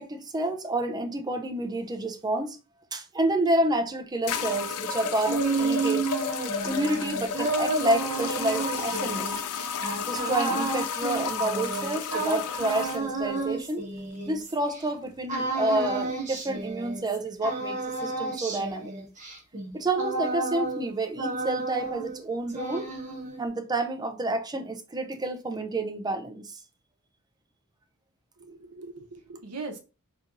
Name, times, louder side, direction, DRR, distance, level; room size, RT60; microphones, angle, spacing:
voice 1, 0.0-2.6 2.9-6.1 6.6-9.4 10.1-13.8 14.2-18.9 19.7-22.9 23.4-26.6, right 2 dB, 20° right, 0.5 m, -29 dB
sound 1, 3.5-3.6 4.3-13.0, left 6 dB, 80° left, 0.4 m, -32 dB
sound 2, 5.0-14.8 15.3-17.2 17.4-20.9 21.2-22.2 22.5-23.5, right 3 dB, 35° right, 1.0 m, -31 dB
voice 2, 28.4-29.8, right 3 dB, 85° right, 0.8 m, -40 dB
4.1 x 2.9 x 2.6 m
head